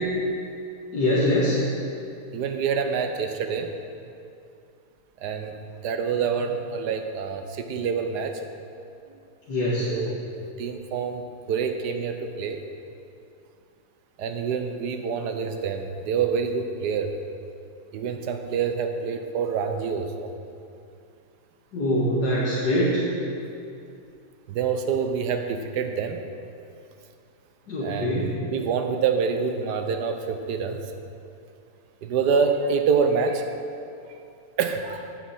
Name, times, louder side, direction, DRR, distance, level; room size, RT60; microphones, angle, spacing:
voice 1, 0.9-1.6 9.5-9.9 21.7-23.0 27.7-28.4, left 1 dB, 80° left, -7 dB, 2.1 m, -23 dB
voice 2, 2.3-3.7 5.2-8.4 9.8-12.6 14.2-17.1 17.9-20.3 24.5-26.2 27.8-30.8 32.0-33.5 34.6-35.1, right 6 dB, 85° right, 6 dB, 1.4 m, -27 dB
14.0 x 8.1 x 4.3 m, 2.5 s
omnidirectional pair, 1.7 m